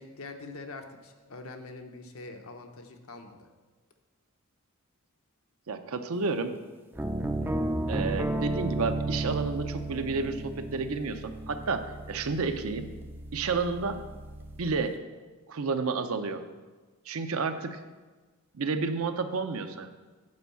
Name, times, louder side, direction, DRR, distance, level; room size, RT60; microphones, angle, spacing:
voice 1, 0.0-3.5, left 3 dB, 70° left, 5 dB, 0.9 m, -44 dB
voice 2, 5.7-6.5 7.9-12.9 13.3-14.0 14.6-15.0 15.5-16.4 17.1-17.8 18.5-19.9, right 4 dB, 70° right, 8 dB, 0.6 m, -31 dB
sound 1, 7.0-14.9, right 1 dB, 10° right, 0.4 m, -34 dB
8.6 x 4.6 x 6.9 m, 1.3 s
head